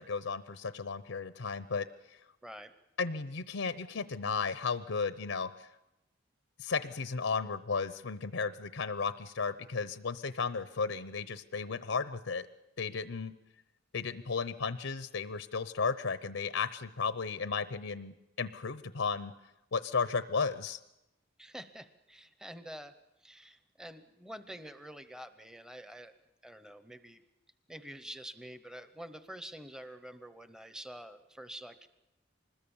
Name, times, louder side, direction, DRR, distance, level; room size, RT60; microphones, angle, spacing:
voice 1, 0.0-2.2 3.0-5.7 6.6-12.5 12.8-13.3 13.9-19.3 19.7-20.8, left 5 dB, 75° left, 13 dB, 0.8 m, -34 dB
voice 2, 2.4-2.7 21.4-22.9 23.2-26.1 26.4-27.2 27.7-31.9, right 1 dB, 5° right, 10 dB, 0.8 m, -47 dB
25.5 x 20.5 x 7.1 m, 0.94 s
head